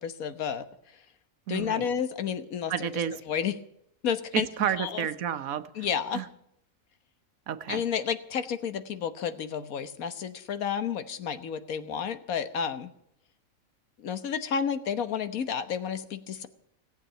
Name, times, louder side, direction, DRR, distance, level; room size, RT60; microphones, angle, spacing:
voice 1, 0.0-0.7 1.5-2.9 3.3-3.5 4.0-4.5 4.8-5.1 5.7-6.2 7.7-12.9 14.0-16.5, left 7 dB, 80° left, 11 dB, 1.5 m, -31 dB
voice 2, 1.5-1.8 2.7-3.2 4.3-5.9 6.1-6.3 7.5-7.8, right 9 dB, 75° right, 12 dB, 1.3 m, -31 dB
17.5 x 8.0 x 8.9 m, 0.74 s
omnidirectional pair, 1.5 m